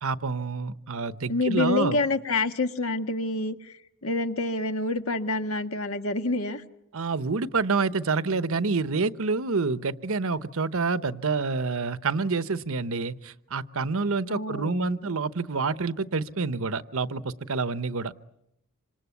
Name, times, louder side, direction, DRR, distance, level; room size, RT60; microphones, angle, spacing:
voice 1, 0.0-2.0 6.9-18.1, right 4 dB, 65° right, 14 dB, 1.0 m, -28 dB
voice 2, 1.3-6.6 14.3-15.1, left 2 dB, 65° left, 7 dB, 1.7 m, -28 dB
26.5 x 26.5 x 8.4 m, 0.82 s
head